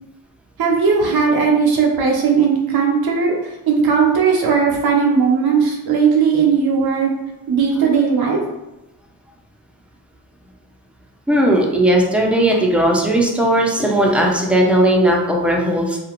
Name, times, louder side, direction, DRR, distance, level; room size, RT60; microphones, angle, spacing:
voice 1, 0.6-7.1 7.5-8.4, right 5 dB, 70° right, -1 dB, 0.7 m, -17 dB
voice 2, 11.3-16.0, right 1 dB, 5° right, -1 dB, 0.7 m, -16 dB
2.4 x 2.4 x 3.0 m, 0.97 s
supercardioid pair, 50°, 38 cm